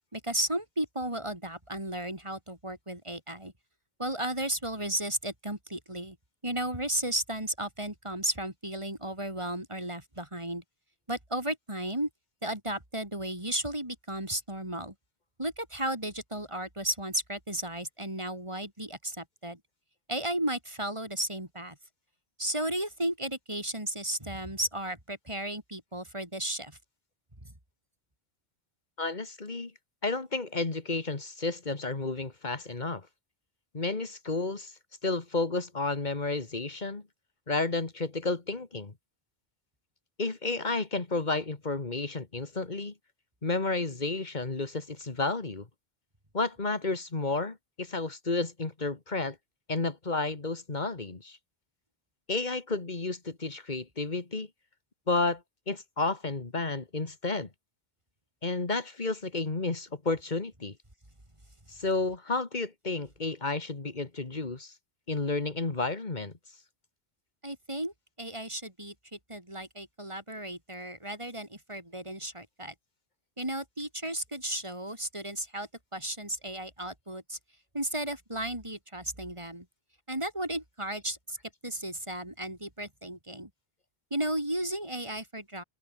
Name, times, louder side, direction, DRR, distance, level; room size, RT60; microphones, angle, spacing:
voice 1, 0.1-3.5 4.0-6.2 6.4-10.6 11.1-12.1 12.4-14.9 15.4-19.6 20.1-21.8 22.4-26.8 67.4-72.7 73.4-77.4 77.7-79.6 80.1-81.4 81.6-83.5 84.1-85.6, right 1 dB, 30° right, 4.7 m, -34 dB
voice 2, 29.0-29.7 30.0-33.1 33.7-34.7 35.0-37.0 37.5-38.9 40.2-42.9 43.4-45.7 46.3-49.4 49.7-51.4 52.3-54.5 55.1-57.5 58.4-60.8 61.7-64.7 65.1-66.3, left 3 dB, 45° left, 2.1 m, -31 dB
omnidirectional pair, 1.0 m